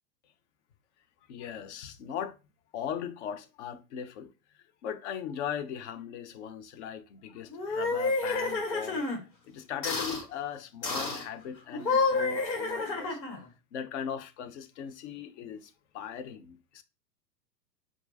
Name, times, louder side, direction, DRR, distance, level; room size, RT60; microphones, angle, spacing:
voice 1, 1.3-2.4 2.7-4.3 4.8-9.0 9.5-13.2 13.7-16.8, left 8 dB, 45° left, 0.7 m, -39 dB
sound 1, 7.5-9.2 9.8-10.2 10.8-11.3 11.7-13.5, left 3 dB, 85° left, 1.4 m, -29 dB
4.5 x 2.4 x 2.7 m
hypercardioid pair, 105°, 50 cm